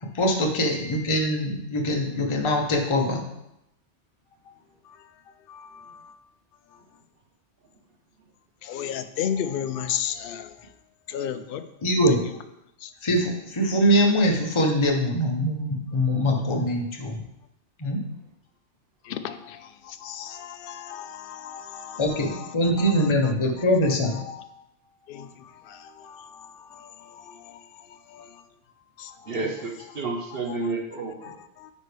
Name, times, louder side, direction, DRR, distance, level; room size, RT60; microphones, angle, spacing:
voice 1, 0.0-3.2 11.8-12.2 13.0-17.2 17.8-18.0 22.0-24.2, equal, 25° left, 1 dB, 0.9 m, -23 dB
voice 2, 5.5-6.2 8.6-10.6 11.1-11.6 12.8-12.9 19.0-22.5 22.8-23.1 24.1-24.5 25.1-28.4 29.0-29.3 30.3-30.7 31.2-31.7, left 9 dB, 60° left, 10 dB, 0.7 m, -35 dB
voice 3, 29.3-31.3, right 3 dB, 55° right, 1 dB, 1.0 m, -30 dB
9.2 x 5.3 x 3.4 m, 0.86 s
omnidirectional pair, 1.2 m